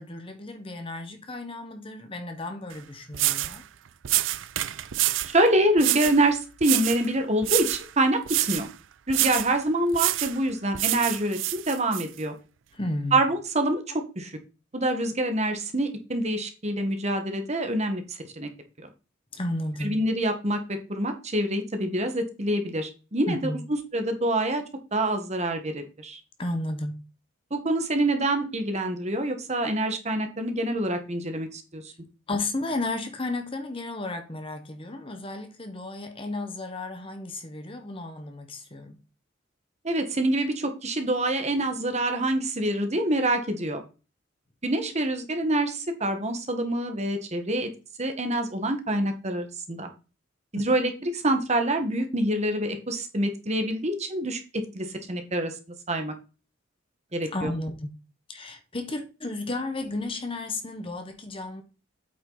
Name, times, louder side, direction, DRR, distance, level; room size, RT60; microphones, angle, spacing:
voice 1, 0.0-3.6 12.7-13.2 19.3-20.0 23.3-23.6 26.4-27.0 32.3-39.0 50.6-50.7 57.3-57.9 58.3-61.6, left 2 dB, 30° left, 1.2 m, -33 dB
sound 1, 2.7-2.8 3.1-3.6 4.0-5.3 5.8-6.2 6.6-7.1 7.4-7.9 8.3-8.7 9.1-9.5 9.9-10.4 10.7-12.0, right 16 dB, 75° right, 0.5 m, -27 dB
voice 2, 5.3-8.7 9.1-12.3 13.1-13.8 14.1-14.3 14.7-18.0 18.4-18.5 19.8-20.6 20.9-23.6 23.9-24.6 24.9-26.2 27.5-31.9 39.8-43.8 44.6-47.7 48.0-49.9 50.5-55.5 55.9-56.1 57.1-57.5, right 1 dB, 35° right, 1.5 m, -26 dB
8.3 x 6.0 x 4.0 m
head